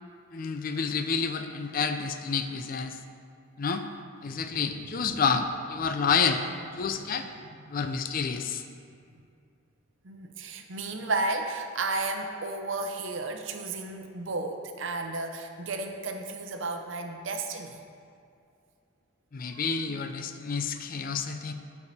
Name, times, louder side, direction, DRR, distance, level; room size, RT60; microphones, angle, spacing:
voice 1, 0.3-3.0 3.6-3.8 4.2-6.4 6.8-7.3 7.7-8.6 19.3-21.5, left 5 dB, 45° left, 8 dB, 0.4 m, -29 dB
voice 2, 4.3-5.1 10.0-17.8 19.5-19.6, right 3 dB, 70° right, 4 dB, 0.7 m, -33 dB
11.5 x 4.7 x 4.2 m, 2.4 s
head